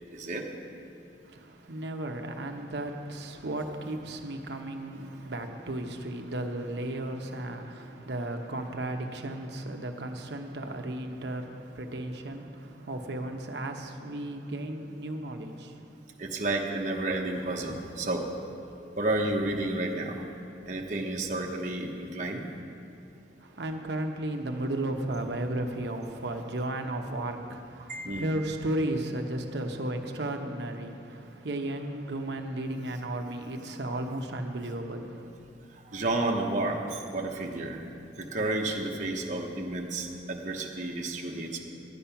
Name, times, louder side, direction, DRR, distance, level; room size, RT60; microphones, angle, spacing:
voice 1, 0.1-0.4 16.2-18.3 18.9-20.3 20.7-22.5 27.9-28.3 35.9-37.8 38.2-41.6, right 2 dB, 45° right, 0 dB, 1.0 m, -31 dB
voice 2, 1.2-15.9 23.4-35.3, right 1 dB, 70° right, 4 dB, 0.9 m, -34 dB
11.5 x 8.7 x 5.7 m, 2.6 s
head